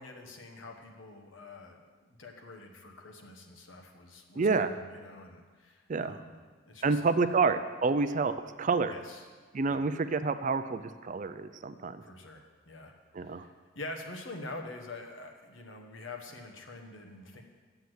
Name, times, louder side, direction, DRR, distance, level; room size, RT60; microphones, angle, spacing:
voice 1, 0.0-6.4 6.6-7.0 8.8-9.3 9.7-9.8 12.0-13.5 13.7-17.4, left 2 dB, 70° left, 3 dB, 1.2 m, -46 dB
voice 2, 4.4-4.8 5.9-6.2 6.8-8.9 9.5-12.0 13.1-13.4, right 4 dB, 40° right, 11 dB, 0.4 m, -28 dB
8.0 x 7.0 x 7.9 m, 1.4 s
head